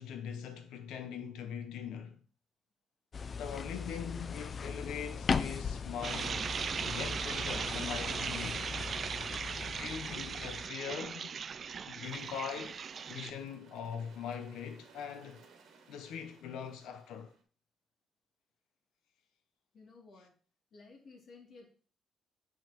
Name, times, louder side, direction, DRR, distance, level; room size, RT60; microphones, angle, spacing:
voice 1, 0.0-2.2 3.4-6.5 6.8-8.7 9.7-11.3 11.9-12.8 13.1-15.4 15.9-17.3, left 7 dB, 85° left, 0.7 m, -42 dB
sound 1, 3.1-10.7, left 5 dB, 40° left, 0.4 m, -38 dB
sound 2, 6.0-13.3, right 6 dB, 50° right, 0.3 m, -38 dB
sound 3, 12.0-17.4, right 5 dB, 75° right, 1.4 m, -61 dB
voice 2, 19.7-20.3 20.7-21.7, left 4 dB, 65° left, 2.4 m, -55 dB
7.1 x 5.8 x 2.9 m
cardioid pair, 85°, 0 cm